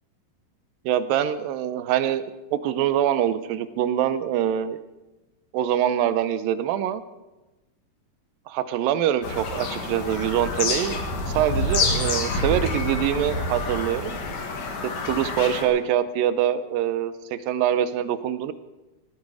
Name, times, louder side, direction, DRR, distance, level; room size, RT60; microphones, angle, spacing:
voice 1, 0.9-2.3 2.5-4.8 5.5-7.0 8.5-11.0 11.3-14.2 15.1-18.5, right 10 dB, 90° right, 13 dB, 2.5 m, -24 dB
Bird vocalization bird call bird song, 9.2-15.6, left 2 dB, 70° left, 3.4 m, -27 dB
19.0 x 14.5 x 4.9 m, 1.1 s
omnidirectional pair, 3.9 m